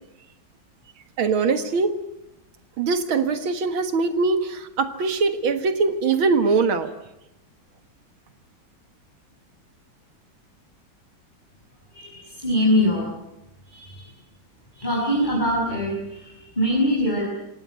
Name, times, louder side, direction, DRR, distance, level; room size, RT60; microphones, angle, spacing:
voice 1, 1.2-2.0 2.8-6.9, right 4 dB, 90° right, 9 dB, 2.4 m, -22 dB
voice 2, 11.9-13.1 13.7-14.1 14.7-17.2, left 1 dB, 20° left, -4 dB, 6.6 m, -23 dB
25.0 x 19.0 x 9.5 m, 0.87 s
omnidirectional pair, 2.2 m